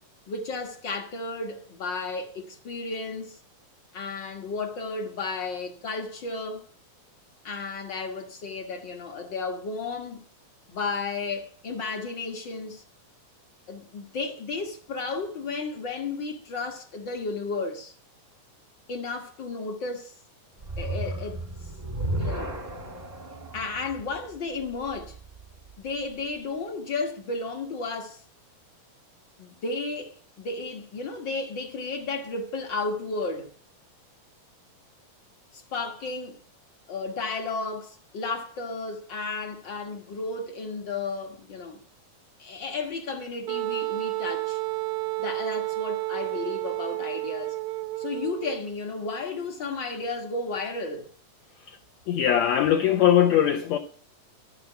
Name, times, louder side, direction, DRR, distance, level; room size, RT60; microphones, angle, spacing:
voice 1, 0.3-3.4 3.9-6.7 7.4-10.2 10.7-12.8 13.7-17.9 18.9-20.1 20.8-21.4 22.2-22.6 23.5-25.2 25.8-28.2 29.4-33.5 35.5-36.4 36.9-41.8 42.4-44.6 45.2-47.6 48.0-51.1, left 3 dB, 50° left, 1.4 m, -33 dB
sound 1, 20.6-25.9, right 1 dB, 30° right, 0.7 m, -34 dB
Wind instrument woodwind instrument, 43.5-48.6, right 21 dB, 80° right, 2.2 m, -31 dB
voice 2, 52.1-53.8, left 10 dB, 75° left, 1.7 m, -21 dB
13.0 x 5.5 x 7.9 m
omnidirectional pair, 4.0 m